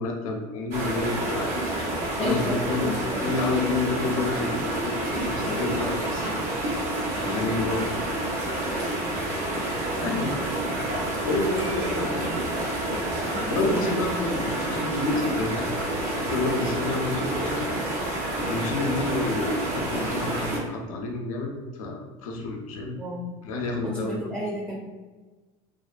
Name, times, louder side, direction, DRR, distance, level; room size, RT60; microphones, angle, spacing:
voice 1, 0.0-1.7 2.2-2.9 3.2-6.4 7.2-7.9 9.9-10.4 10.8-12.4 12.9-15.7 16.2-18.0 18.4-23.0 23.4-24.3, left 3 dB, 85° left, 1 dB, 0.5 m, -29 dB
sound 1, 0.7-20.6, right 1 dB, 80° right, 0.8 m, -29 dB
voice 2, 2.2-3.3 7.2-7.5 13.3-13.9 23.0-23.3 23.8-24.8, equal, 10° right, -3 dB, 0.5 m, -33 dB
2.5 x 2.2 x 2.4 m, 1.3 s
supercardioid pair, 90°, 17 cm